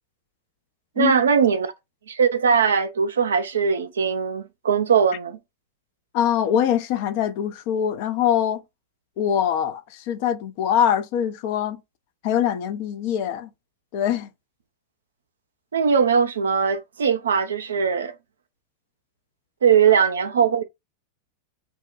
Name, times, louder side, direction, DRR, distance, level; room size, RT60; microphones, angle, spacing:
voice 1, 1.0-1.7 2.1-5.4 15.7-18.1 19.6-20.6, right 6 dB, 65° right, 0.4 m, -20 dB
voice 2, 6.1-8.6 9.2-11.8 12.2-13.5 13.9-14.3, left 9 dB, 45° left, 0.4 m, -23 dB
2.7 x 2.1 x 2.3 m
figure-of-eight pair, 90°, 0 cm